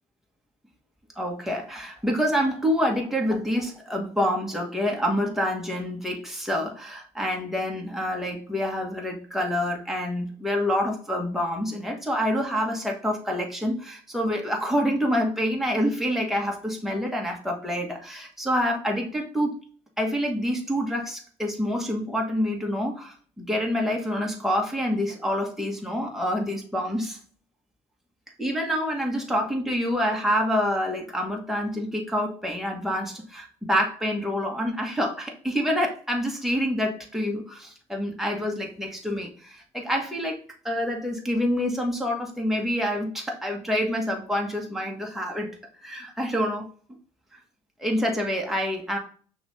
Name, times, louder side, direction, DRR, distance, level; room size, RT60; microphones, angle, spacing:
voice 1, 1.1-19.5 20.0-27.2 28.4-40.4 40.6-46.7 47.8-49.0, equal, ahead, 1 dB, 1.6 m, -27 dB
5.9 x 2.8 x 3.3 m, 0.43 s
supercardioid pair, 70°, 16 cm